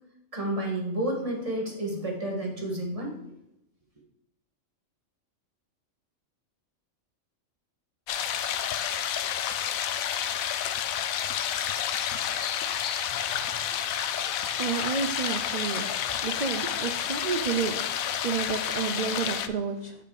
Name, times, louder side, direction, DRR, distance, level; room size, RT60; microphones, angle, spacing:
voice 1, 0.3-3.3, right 1 dB, 25° right, 0 dB, 1.8 m, -31 dB
sound 1, 8.1-19.5, left 9 dB, 80° left, 1.0 m, -30 dB
voice 2, 14.6-19.9, right 6 dB, 80° right, 6 dB, 0.3 m, -31 dB
7.8 x 5.2 x 4.9 m, 0.86 s
omnidirectional pair, 1.4 m